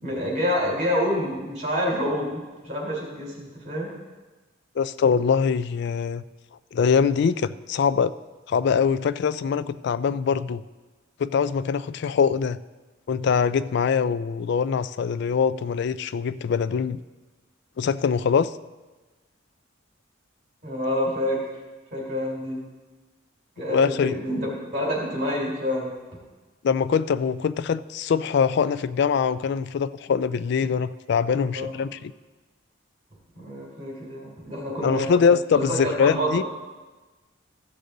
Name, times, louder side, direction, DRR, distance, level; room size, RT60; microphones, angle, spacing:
voice 1, 0.0-3.9 20.6-21.4 21.9-22.6 23.6-25.9 31.3-31.8 33.3-35.1 35.5-36.3, equal, 35° right, -3 dB, 3.4 m, -27 dB
voice 2, 4.8-6.2 6.7-8.1 8.5-10.6 11.2-12.6 13.1-17.0 17.8-18.5 23.7-24.2 26.6-32.1 34.8-36.4, left 6 dB, 60° left, 15 dB, 0.3 m, -23 dB
15.0 x 6.7 x 3.8 m, 1.2 s
head